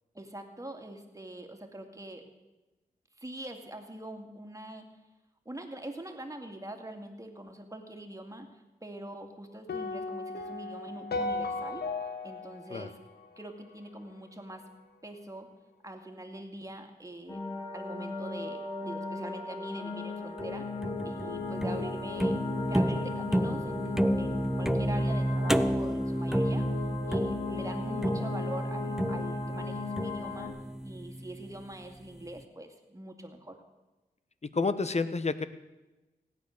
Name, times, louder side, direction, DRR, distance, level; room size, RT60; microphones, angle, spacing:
voice 1, 0.1-2.2 3.2-4.9 5.5-8.5 8.8-11.8 12.2-13.0 13.4-14.6 15.0-15.5 15.8-17.4 17.7-20.7 21.0-26.7 27.0-30.5 30.8-33.6, right 1 dB, 20° right, 4 dB, 2.4 m, -43 dB
sound 1, 9.7-14.0, left 3 dB, 80° left, 1.4 m, -36 dB
sound 2, 17.3-30.5, left 4 dB, 25° left, 4.0 m, -37 dB
sound 3, 20.4-31.6, equal, 5° right, 0.7 m, -31 dB
voice 2, 34.5-35.4, left 4 dB, 40° left, 13 dB, 1.0 m, -29 dB
16.5 x 9.6 x 6.6 m, 1.1 s
cardioid pair, 60°, 17 cm